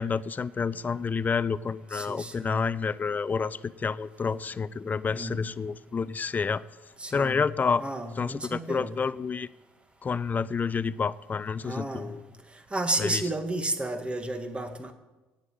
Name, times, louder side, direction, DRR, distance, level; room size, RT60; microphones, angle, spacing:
voice 1, 0.0-6.6 7.1-7.8 8.2-9.5 10.0-12.2 13.0-13.2, left 5 dB, 30° left, 0.5 m, -29 dB
voice 2, 1.9-2.6 5.1-5.5 7.0-7.5 7.8-9.0 11.6-12.1 12.7-14.9, right 1 dB, 20° right, 1.6 m, -32 dB
9.5 x 7.8 x 8.3 m
supercardioid pair, 70°, 6 cm